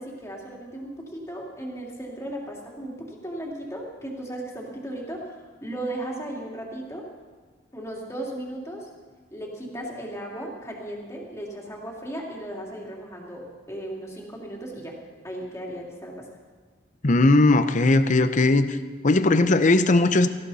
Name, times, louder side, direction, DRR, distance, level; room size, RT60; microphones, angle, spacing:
voice 1, 0.0-7.1 7.7-8.9 9.3-15.0 15.2-16.3, right 1 dB, 15° left, -2 dB, 2.7 m, -36 dB
voice 2, 17.0-18.8 19.0-20.3, left 2 dB, 40° left, 10 dB, 0.7 m, -18 dB
18.0 x 15.0 x 4.2 m, 1.4 s
head